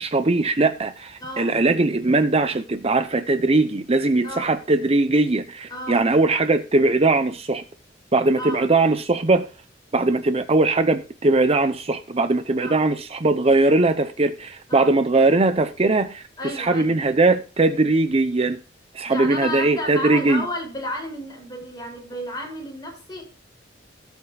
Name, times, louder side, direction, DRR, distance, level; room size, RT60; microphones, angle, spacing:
voice 1, 0.0-7.6 8.1-9.5 9.9-18.6 18.9-20.4, right 2 dB, 35° right, 0.7 m, -20 dB
voice 2, 1.2-1.5 4.2-4.5 5.7-6.0 8.4-8.6 12.6-12.8 14.7-15.0 16.4-16.9 19.0-23.2, left 1 dB, 25° left, 6.4 m, -32 dB
18.5 x 8.2 x 2.3 m
head